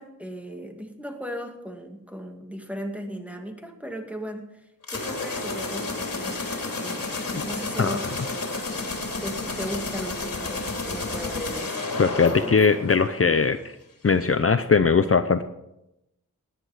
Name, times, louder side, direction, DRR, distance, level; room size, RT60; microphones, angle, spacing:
voice 1, 0.0-8.1 9.2-11.9, equal, 5° right, 4 dB, 2.2 m, -37 dB
sound 1, 4.8-13.5, left 3 dB, 75° left, 3.1 m, -31 dB
voice 2, 12.0-13.6 14.0-15.4, left 5 dB, 45° left, 10 dB, 0.7 m, -20 dB
18.5 x 10.0 x 4.9 m, 0.87 s
wide cardioid pair, 75°, 33 cm